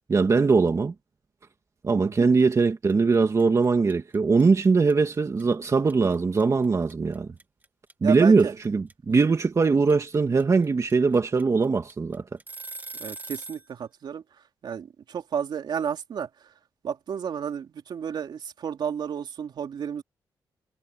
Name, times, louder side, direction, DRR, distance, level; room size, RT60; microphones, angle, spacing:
voice 1, 0.1-0.9 1.8-7.3 8.0-12.2, right 4 dB, 40° right, 2.4 m, -21 dB
sound 1, 2.4-2.6 2.9-13.7, right 3 dB, 25° right, 2.6 m, -41 dB
voice 2, 8.0-8.5 13.0-14.2 14.6-16.3 16.8-20.0, right 7 dB, 70° right, 3.4 m, -32 dB
cardioid pair, 80°, 8 cm